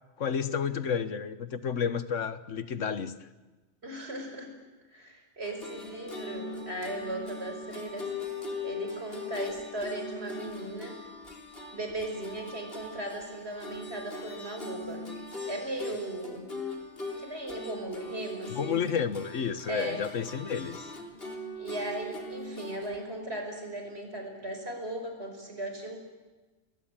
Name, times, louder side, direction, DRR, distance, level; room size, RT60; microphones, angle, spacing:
voice 1, 0.2-3.1 18.5-20.9, left 7 dB, 80° left, 12 dB, 1.6 m, -31 dB
voice 2, 3.8-4.5 4.9-8.1 8.6-11.0 11.7-15.1 15.4-16.5 17.2-18.8 19.6-20.0 21.5-26.0, right 1 dB, 60° right, 4 dB, 5.6 m, -37 dB
sound 1, 5.4-23.0, left 2 dB, 50° left, 3.9 m, -40 dB
30.0 x 21.5 x 9.0 m, 1.2 s
omnidirectional pair, 1.2 m